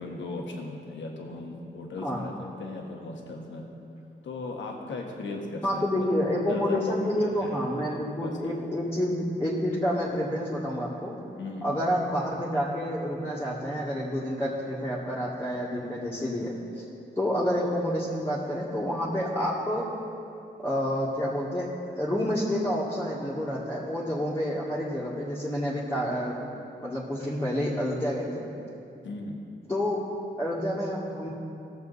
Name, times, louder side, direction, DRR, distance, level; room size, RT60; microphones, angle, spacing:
voice 1, 0.0-3.7 4.2-6.1 6.5-8.6 11.4-11.8 29.0-29.4, left 2 dB, 80° left, 1 dB, 1.4 m, -37 dB
voice 2, 5.6-11.2 11.6-16.8 17.2-19.9 20.6-21.7 22.0-26.4 26.8-28.4 29.7-30.0 30.4-31.3, equal, 15° left, -8 dB, 1.8 m, -29 dB
17.0 x 7.0 x 4.1 m, 2.7 s
cardioid pair, 85°, 19 cm